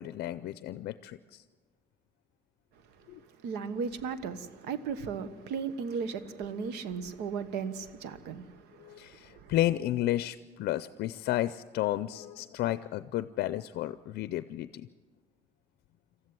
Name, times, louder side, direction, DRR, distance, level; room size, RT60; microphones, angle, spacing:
voice 1, 0.0-1.4 3.1-3.2 8.8-14.9, left 14 dB, 70° left, 0.5 m, -32 dB
voice 2, 3.4-9.5, right 6 dB, 85° right, 1.2 m, -36 dB
19.5 x 14.5 x 9.6 m
cardioid pair, 110°, 17 cm